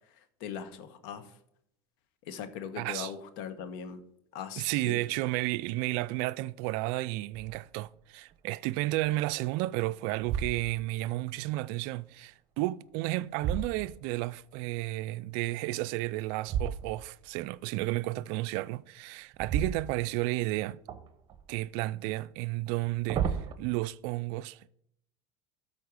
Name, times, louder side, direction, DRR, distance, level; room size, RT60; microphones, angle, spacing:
voice 1, 0.1-1.4 2.2-4.0 4.3-5.0, left 7 dB, 70° left, 1.1 m, -40 dB
voice 2, 2.8-3.1 4.6-20.8 21.5-24.7, right 18 dB, 65° right, 0.4 m, -32 dB
sound 1, 7.3-7.8 8.3-8.4 9.0-9.6 10.1-11.0 12.7-14.4 16.4-17.3 19.3-20.5 20.9-21.6 22.7-23.5, right 8 dB, 40° right, 0.9 m, -35 dB
12.5 x 4.4 x 4.8 m
hypercardioid pair, 95°, 12 cm